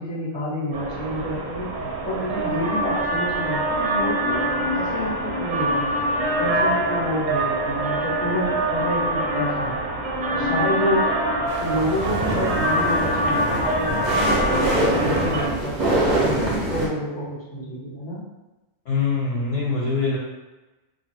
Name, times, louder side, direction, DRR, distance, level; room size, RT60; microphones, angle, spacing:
voice 1, 0.0-1.7 2.0-4.4 4.7-5.9 6.4-9.8 10.3-11.1 11.6-14.0 14.5-18.2, equal, 25° left, -7 dB, 0.9 m, -28 dB
sound 1, 0.7-15.5, right 1 dB, 85° right, 1.1 m, -24 dB
sound 2, 11.5-16.9, right 1 dB, 50° right, 0.6 m, -24 dB
voice 2, 18.9-20.2, left 4 dB, 65° left, -6 dB, 0.8 m, -23 dB
2.9 x 2.2 x 3.2 m, 1.1 s
omnidirectional pair, 1.3 m